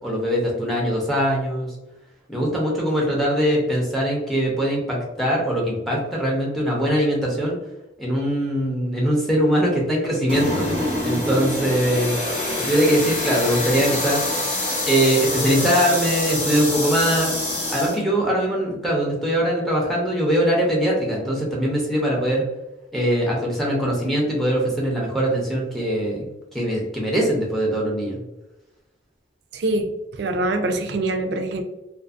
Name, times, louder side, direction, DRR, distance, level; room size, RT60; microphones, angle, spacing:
voice 1, 0.0-1.7 2.3-7.6 8.0-10.7 11.0-12.2 12.6-14.2 14.9-17.4 17.7-22.5 22.9-28.2, equal, ahead, -3 dB, 0.5 m, -22 dB
sound 1, 10.3-18.0, left 1 dB, 30° left, 0.8 m, -25 dB
voice 2, 29.5-29.9 30.2-31.6, right 2 dB, 65° right, 5 dB, 0.4 m, -24 dB
2.5 x 2.5 x 2.4 m, 1.0 s
head